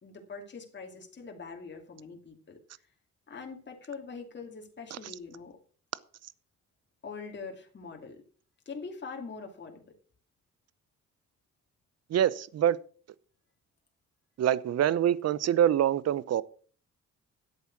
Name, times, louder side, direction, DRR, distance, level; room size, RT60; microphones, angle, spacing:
voice 1, 0.0-2.6 3.3-5.6 7.0-8.2 8.7-9.8, left 4 dB, 35° left, 2.7 m, -43 dB
voice 2, 12.1-12.8 14.4-16.4, right 10 dB, 55° right, 0.8 m, -25 dB
11.0 x 8.2 x 6.1 m
cardioid pair, 90°, 30 cm